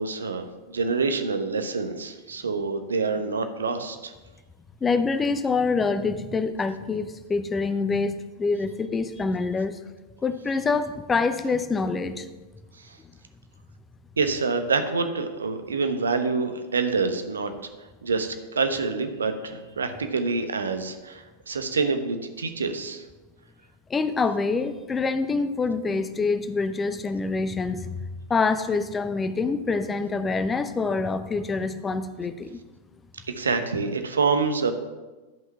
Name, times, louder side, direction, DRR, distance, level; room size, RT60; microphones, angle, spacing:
voice 1, 0.0-4.1 12.8-13.0 14.2-17.5 18.0-23.0 33.4-34.7, right 4 dB, 70° right, 8 dB, 0.9 m, -26 dB
voice 2, 4.8-9.8 10.2-12.3 23.9-27.9 28.3-32.6, left 4 dB, 15° left, 10 dB, 0.7 m, -26 dB
11.0 x 5.8 x 5.8 m, 1.2 s
figure-of-eight pair, 90°, 0 cm